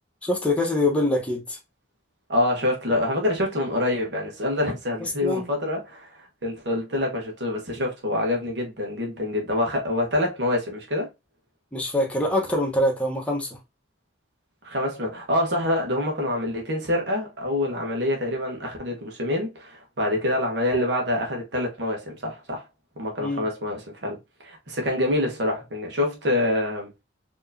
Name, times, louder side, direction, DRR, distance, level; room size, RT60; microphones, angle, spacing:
voice 1, 0.2-1.6 5.0-5.5 11.7-13.6 23.2-23.4, left 1 dB, 5° left, 1.0 m, -24 dB
voice 2, 2.3-6.1 6.4-11.1 14.6-22.6 23.0-24.2 24.4-26.9, left 1 dB, 65° right, 1.2 m, -26 dB
4.5 x 3.0 x 2.6 m
head